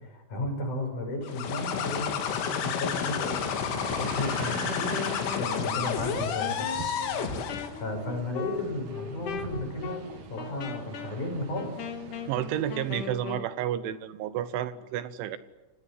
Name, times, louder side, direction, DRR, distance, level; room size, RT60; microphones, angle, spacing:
voice 1, 0.0-5.0 5.4-6.7 7.7-11.7, left 1 dB, 40° left, 3 dB, 7.1 m, -34 dB
sound 1, 1.3-7.8, left 7 dB, 75° left, 4.6 m, -30 dB
sound 2, 3.7-13.1, right 6 dB, 50° right, 2.4 m, -43 dB
Wind instrument woodwind instrument, 4.8-13.5, left 7 dB, 60° left, 2.3 m, -39 dB
voice 2, 12.3-15.4, right 11 dB, 80° right, 13 dB, 3.3 m, -31 dB
28.5 x 18.5 x 9.9 m, 1.1 s
omnidirectional pair, 5.7 m